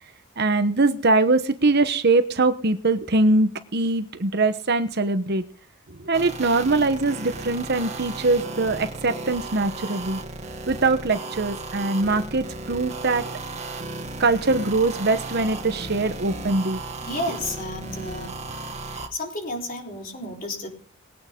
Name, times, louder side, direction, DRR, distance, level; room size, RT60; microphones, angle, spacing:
voice 1, 0.4-5.5 5.9-10.2 10.7-13.3 14.2-16.8, right 3 dB, 50° right, 10 dB, 1.0 m, -22 dB
sound 1, 6.1-19.1, right 2 dB, 30° right, 1.9 m, -35 dB
voice 2, 17.0-18.4 18.9-20.7, left 1 dB, 40° left, 0 dB, 4.1 m, -32 dB
20.5 x 9.2 x 3.7 m, 0.43 s
head